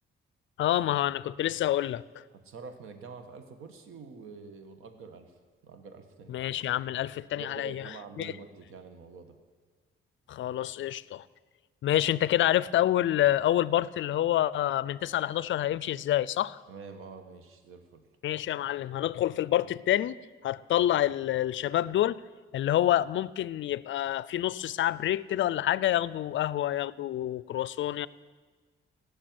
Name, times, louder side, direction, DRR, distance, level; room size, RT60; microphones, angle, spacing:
voice 1, 0.6-2.0 6.3-8.3 10.3-11.3 11.8-16.6 18.2-20.2 20.4-22.2 22.5-28.1, left 12 dB, 70° left, 0.5 m, -27 dB
voice 2, 2.4-5.3 5.6-6.4 7.4-9.4 11.9-12.1 16.7-18.0, right 5 dB, 90° right, 1.4 m, -46 dB
17.0 x 6.7 x 9.5 m
cardioid pair, 110°, 21 cm